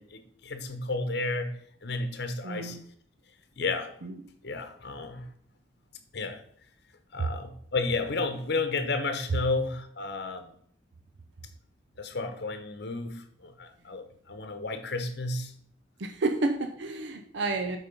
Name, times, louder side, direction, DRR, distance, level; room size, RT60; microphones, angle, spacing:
voice 1, 0.0-1.5 1.8-2.8 3.6-3.9 4.4-5.3 6.1-6.4 7.1-10.5 12.0-15.5, left 3 dB, 60° left, 8 dB, 0.9 m, -32 dB
voice 2, 2.4-2.8 4.0-4.2 7.2-7.3 16.0-17.8, right 3 dB, 75° right, 7 dB, 0.7 m, -30 dB
8.7 x 4.1 x 5.3 m, 0.63 s
head